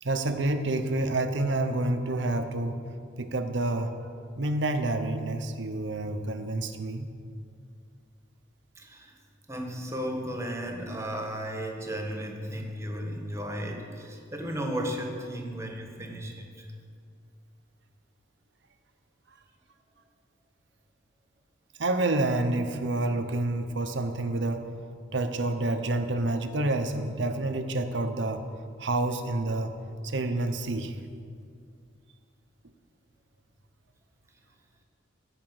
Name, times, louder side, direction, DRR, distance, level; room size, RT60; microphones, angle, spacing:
voice 1, 0.0-2.7 3.2-3.9 4.4-7.1 21.8-24.6 25.1-28.4 28.8-29.7 30.0-31.0, right 2 dB, 65° right, 7 dB, 0.8 m, -28 dB
voice 2, 8.8-9.2 9.5-16.7, equal, 15° right, 2 dB, 1.3 m, -34 dB
14.5 x 5.0 x 7.9 m, 2.3 s
head